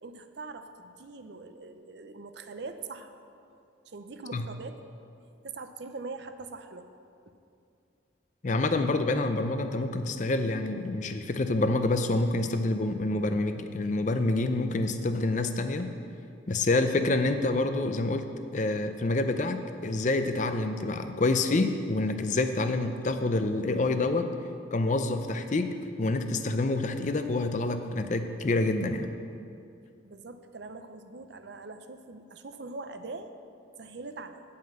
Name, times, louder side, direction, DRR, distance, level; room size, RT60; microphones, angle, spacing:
voice 1, 0.0-3.1 3.9-4.8 5.4-6.9 7.3-7.4 30.0-33.3 33.8-34.4, right 3 dB, 60° right, 8 dB, 0.6 m, -42 dB
voice 2, 8.4-15.9 16.5-18.2 18.5-24.3 24.7-25.7 26.0-29.1, left 2 dB, 40° left, 8 dB, 0.5 m, -27 dB
9.5 x 5.6 x 7.6 m, 2.5 s
head